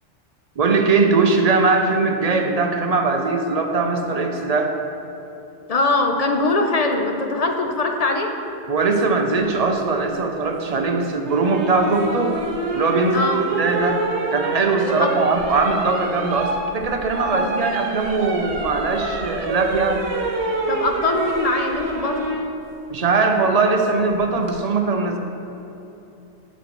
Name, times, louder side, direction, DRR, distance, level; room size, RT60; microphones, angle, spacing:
voice 1, 0.6-4.8 8.7-12.3 12.7-13.3 13.6-14.0 14.3-20.1 22.9-25.2, right 3 dB, 45° right, 4 dB, 0.5 m, -20 dB
voice 2, 5.7-8.3 13.1-13.4 14.8-15.1 17.3-17.5 20.7-22.3, left 2 dB, 45° left, 3 dB, 0.5 m, -22 dB
sound 1, 11.2-22.4 24.1-24.5, right 2 dB, 85° right, 1.2 m, -27 dB
8.2 x 7.2 x 3.0 m, 2.9 s
omnidirectional pair, 1.1 m